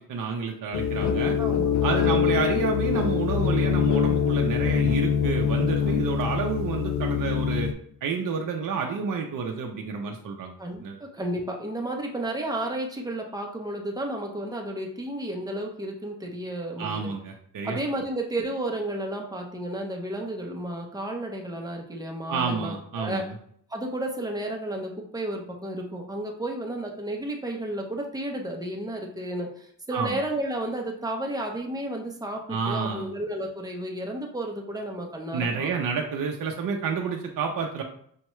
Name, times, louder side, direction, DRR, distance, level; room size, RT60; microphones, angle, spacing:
voice 1, 0.1-1.4 1.8-7.7 8.0-10.5 10.8-11.0 16.8-17.8 22.3-23.3 29.9-30.2 32.5-33.1 35.3-37.8, right 5 dB, 65° right, 2 dB, 0.6 m, -29 dB
sound 1, 0.7-7.7, left 8 dB, 55° left, 0.4 m, -24 dB
voice 2, 1.4-2.3 10.6-17.1 17.6-23.3 23.7-35.7, right 1 dB, 10° right, 1 dB, 0.7 m, -32 dB
5.5 x 2.2 x 3.0 m, 0.64 s
wide cardioid pair, 115°, 35 cm